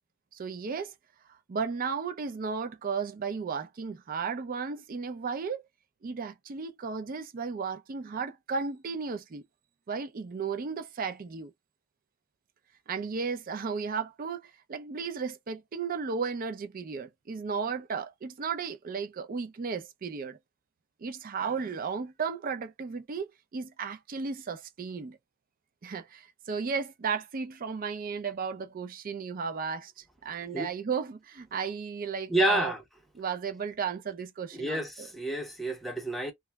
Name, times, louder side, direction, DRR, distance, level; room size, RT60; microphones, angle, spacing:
voice 1, 0.3-0.9 1.5-5.6 6.0-9.4 9.9-11.5 12.9-20.4 21.0-25.2 25.8-32.7 33.1-35.1, right 5 dB, 40° right, 0.4 m, -34 dB
voice 2, 32.3-32.8 34.5-36.3, right 1 dB, ahead, 0.6 m, -29 dB
2.3 x 2.0 x 3.3 m
head